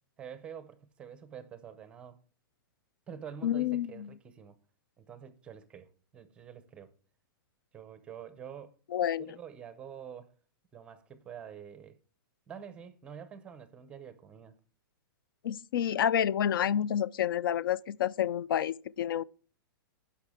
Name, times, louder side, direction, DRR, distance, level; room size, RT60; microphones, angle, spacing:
voice 1, 0.2-2.2 3.1-4.6 5.0-6.9 7.7-8.8 9.2-10.3 10.7-12.0 12.5-14.6, right 8 dB, 10° right, 0.5 m, -47 dB
voice 2, 3.4-4.1 8.9-9.4 15.4-19.2, left 10 dB, 75° left, 0.4 m, -29 dB
16.0 x 5.8 x 3.5 m
supercardioid pair, 180°, 12 cm